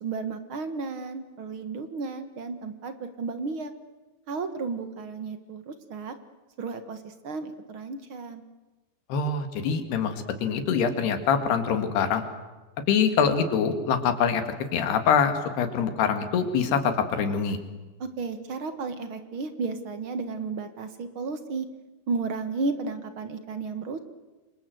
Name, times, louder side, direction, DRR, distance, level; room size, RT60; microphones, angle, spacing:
voice 1, 0.0-3.7 4.3-6.1 6.6-8.4 18.0-21.7 22.1-24.0, right 4 dB, 60° right, 9 dB, 1.4 m, -33 dB
voice 2, 9.1-12.2 12.9-14.4 14.7-17.6, left 6 dB, 80° left, 8 dB, 4.2 m, -24 dB
29.0 x 26.0 x 7.9 m, 1.2 s
omnidirectional pair, 4.6 m